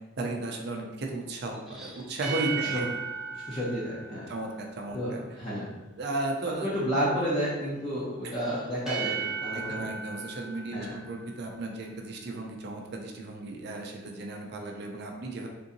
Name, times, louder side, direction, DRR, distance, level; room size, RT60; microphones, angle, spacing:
voice 1, 0.2-2.9 4.3-5.2 6.0-6.7 8.2-8.3 9.5-15.5, right 2 dB, 55° right, 1 dB, 0.5 m, -35 dB
sound 1, 1.5-5.1 8.3-11.8, right 6 dB, 5° right, 0.5 m, -37 dB
voice 2, 2.5-2.8 3.3-4.3 4.9-5.7 6.6-9.9 10.7-11.0, equal, 30° left, -9 dB, 0.7 m, -31 dB
3.7 x 2.6 x 2.6 m, 1.1 s
head